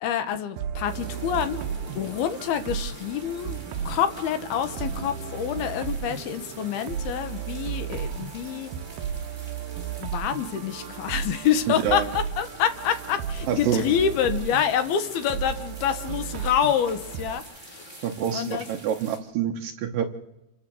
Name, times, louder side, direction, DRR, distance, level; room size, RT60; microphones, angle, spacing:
voice 1, 0.0-1.6 2.0-3.6 3.9-8.7 10.0-18.0 18.3-18.7, left 9 dB, 70° left, 11 dB, 2.9 m, -27 dB
sound 1, 0.6-17.4, right 8 dB, 85° right, 1.8 m, -35 dB
sound 2, 0.8-19.2, right 1 dB, 10° right, 4.2 m, -45 dB
voice 2, 11.7-12.1 13.5-13.8 18.0-20.0, right 9 dB, 70° right, 6 dB, 2.3 m, -27 dB
27.5 x 13.0 x 7.6 m, 0.92 s
omnidirectional pair, 4.9 m